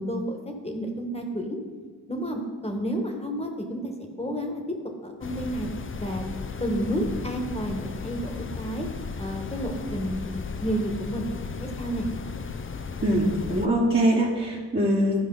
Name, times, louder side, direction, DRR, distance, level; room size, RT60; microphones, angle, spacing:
voice 1, 0.0-1.6 2.1-4.8 5.0-5.7 6.0-6.2 6.6-8.9 9.2-10.3 10.6-12.1, right 1 dB, 15° left, 3 dB, 1.4 m, -31 dB
sound 1, 5.2-13.7, left 5 dB, 30° left, 0.5 m, -35 dB
voice 2, 13.0-15.2, right 1 dB, 25° right, -5 dB, 1.2 m, -23 dB
13.0 x 4.9 x 3.9 m, 1.6 s
cardioid pair, 65°, 42 cm